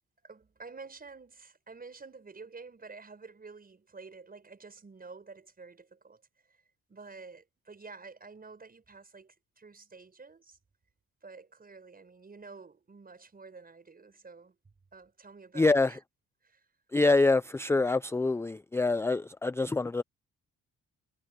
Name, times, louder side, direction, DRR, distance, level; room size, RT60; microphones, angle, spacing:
voice 1, 0.2-6.6 6.9-10.6 11.2-14.6 14.9-16.0 16.4-16.7, right 4 dB, 30° right, 5.6 m, -50 dB
voice 2, 15.6-15.9 16.9-20.0, left 3 dB, 10° left, 0.5 m, -25 dB
cardioid pair, 90°, 30 cm